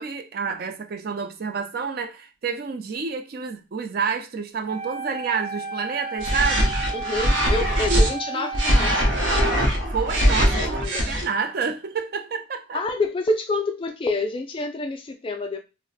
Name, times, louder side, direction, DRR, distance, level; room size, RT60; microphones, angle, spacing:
voice 1, 0.0-6.8 7.4-8.0 8.3-8.5 9.9-12.8, right 5 dB, 45° right, 0.4 m, -29 dB
Wind instrument woodwind instrument, 4.7-9.8, right 4 dB, 30° right, 0.8 m, -34 dB
sound 1, 6.2-8.1 8.5-11.2, equal, 65° right, 0.7 m, -21 dB
voice 2, 6.9-9.4 10.6-11.2 12.7-15.6, left 2 dB, 25° left, 0.3 m, -28 dB
2.4 x 2.1 x 3.9 m
head